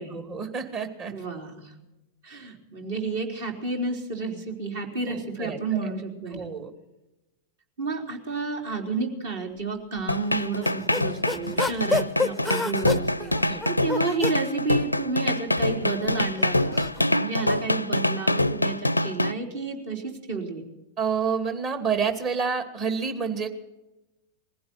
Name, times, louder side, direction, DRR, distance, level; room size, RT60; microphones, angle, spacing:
voice 1, 0.0-1.1 5.1-5.9 6.3-6.7 11.4-11.6 13.5-13.6 21.0-23.5, right 6 dB, 40° right, 6 dB, 2.7 m, -29 dB
voice 2, 1.1-1.7 2.2-6.5 7.8-16.8 17.2-20.7, right 3 dB, 60° right, 2 dB, 3.8 m, -31 dB
sound 1, 10.1-19.3, left 1 dB, 90° left, 0.5 m, -25 dB
sound 2, 10.3-14.4 15.3-17.1, left 3 dB, ahead, 0.6 m, -30 dB
20.5 x 15.5 x 4.5 m, 0.97 s
figure-of-eight pair, 90°, 0 cm